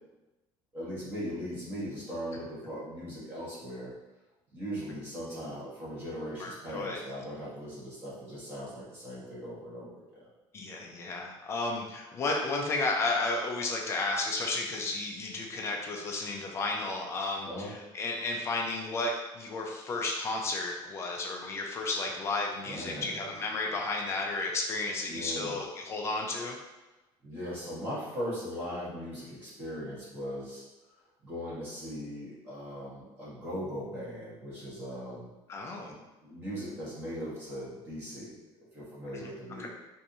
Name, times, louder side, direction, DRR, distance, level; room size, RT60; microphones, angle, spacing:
voice 1, 0.7-3.9 4.5-10.3 17.4-17.7 22.6-23.3 25.0-25.6 27.2-30.7 31.2-35.3 35.9-38.3 38.7-39.7, equal, 20° right, -7 dB, 1.2 m, -39 dB
voice 2, 6.4-7.0 10.5-26.6 35.5-35.9 39.6-39.7, left 3 dB, 25° left, 0 dB, 0.4 m, -33 dB
4.5 x 2.6 x 2.7 m, 1.1 s
cardioid pair, 175°, 11 cm